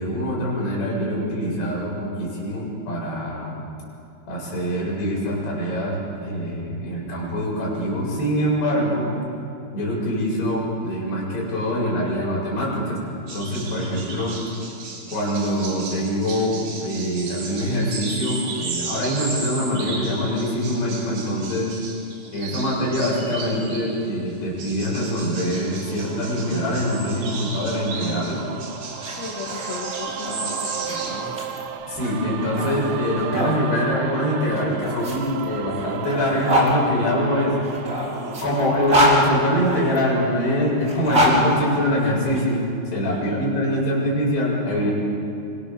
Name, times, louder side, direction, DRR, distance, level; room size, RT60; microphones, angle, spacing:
voice 1, 0.0-3.5 4.3-9.1 9.7-13.0 13.3-14.4 15.1-21.7 22.3-28.4 31.8-37.6 38.4-42.6 42.9-44.9, equal, 55° left, -4 dB, 9.3 m, -24 dB
sound 1, 13.3-24.1 24.6-31.1, right 4 dB, 55° right, 5.9 m, -35 dB
sound 2, 25.7-39.2, right 10 dB, 80° right, 3.3 m, -34 dB
sound 3, 28.9-33.6 34.5-36.7 37.6-40.0 40.8-42.4, equal, 15° right, 4.4 m, -25 dB
voice 2, 29.2-30.5 30.7-31.2 43.1-43.6, left 5 dB, 85° left, -2 dB, 4.9 m, -36 dB
29.5 x 25.5 x 7.0 m, 2.7 s
omnidirectional pair, 5.9 m